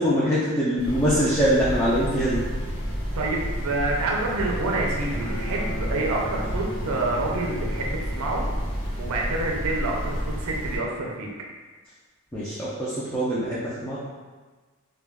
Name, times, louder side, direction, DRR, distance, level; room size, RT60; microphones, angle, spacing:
voice 1, 0.0-2.4 12.3-14.0, equal, 10° left, -10 dB, 0.4 m, -23 dB
sound 1, 0.8-10.8, equal, 85° left, 0.9 m, -31 dB
voice 2, 3.1-8.5 9.0-11.3, right 2 dB, 80° right, -1 dB, 0.5 m, -27 dB
Bowed string instrument, 4.6-8.9, equal, 60° left, 0.7 m, -38 dB
2.3 x 2.2 x 3.4 m, 1.4 s
head